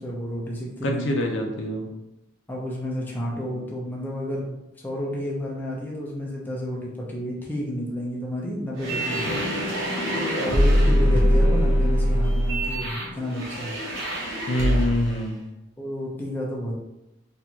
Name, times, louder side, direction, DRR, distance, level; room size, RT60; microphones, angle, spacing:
voice 1, 0.0-1.1 2.5-9.3 10.1-13.7 15.8-16.7, equal, 10° left, -4 dB, 0.6 m, -31 dB
voice 2, 0.8-1.9 3.4-3.6 10.8-11.6 14.5-15.4, equal, 55° left, 1 dB, 0.6 m, -27 dB
sound 1, 8.7-15.2, equal, 65° right, 1.1 m, -23 dB
Drum, 9.3-11.4, left 1 dB, 90° left, 1.0 m, -41 dB
4.3 x 2.5 x 2.8 m, 0.92 s
head